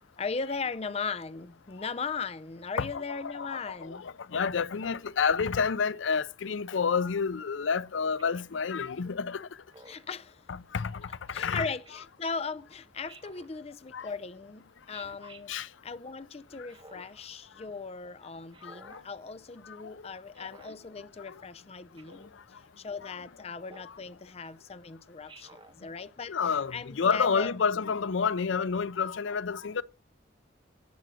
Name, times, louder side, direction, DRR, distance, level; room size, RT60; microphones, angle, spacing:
voice 1, 0.2-4.1 9.9-10.4 11.3-15.5 15.8-27.5, left 4 dB, 35° left, 0.5 m, -38 dB
voice 2, 3.2-9.5 10.7-11.0 11.3-11.6 13.9-14.1 15.5-15.7 18.6-19.0 19.8-19.9 20.4-20.5 21.3-21.4 26.3-29.8, left 5 dB, 85° left, 0.5 m, -29 dB
Speech synthesizer, 8.2-8.6 9.7-10.2 11.6-11.9 13.1-13.5 14.9-15.4 16.7-17.3 18.5-19.1 20.3-20.8 22.0-22.3 23.6-24.0 25.3-25.8, right 3 dB, 25° right, 1.0 m, -53 dB
11.0 x 7.7 x 6.2 m
head